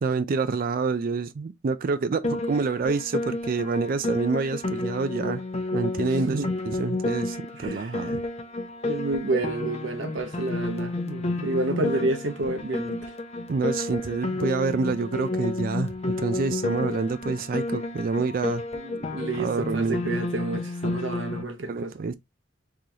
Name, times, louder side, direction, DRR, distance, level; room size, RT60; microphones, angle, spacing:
voice 1, 0.0-5.4 5.7-6.4 6.7-8.2 13.5-18.6 19.4-20.0 21.7-22.1, right 4 dB, 45° right, 0.4 m, -27 dB
Piano, 2.2-21.4, left 2 dB, 35° left, 0.7 m, -31 dB
voice 2, 7.5-8.1 8.8-13.1 18.7-21.9, right 2 dB, 70° right, 0.8 m, -30 dB
3.8 x 3.2 x 2.7 m
head